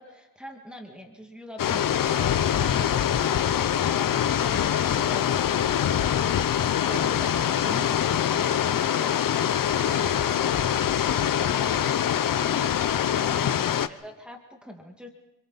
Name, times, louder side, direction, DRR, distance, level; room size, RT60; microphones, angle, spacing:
voice 1, 0.0-3.6 13.1-15.1, equal, 5° right, 1 dB, 2.2 m, -43 dB
sound 1, 1.6-13.9, left 9 dB, 55° left, 0.9 m, -24 dB
voice 2, 12.4-13.1, left 3 dB, 35° left, 2 dB, 3.0 m, -44 dB
28.0 x 26.0 x 4.2 m, 0.94 s
wide cardioid pair, 130°, 39 cm